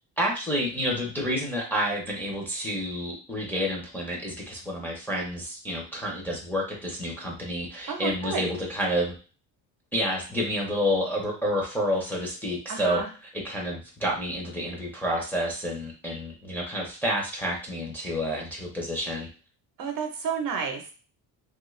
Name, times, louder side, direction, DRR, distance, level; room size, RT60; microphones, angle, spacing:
voice 1, 0.2-9.1 9.9-13.0 13.3-19.3, equal, 5° left, -3 dB, 0.6 m, -29 dB
voice 2, 7.9-8.5 12.7-13.1 19.8-20.9, right 5 dB, 55° right, 4 dB, 0.8 m, -31 dB
3.0 x 2.4 x 3.1 m, 0.36 s
cardioid pair, 150°, 41 cm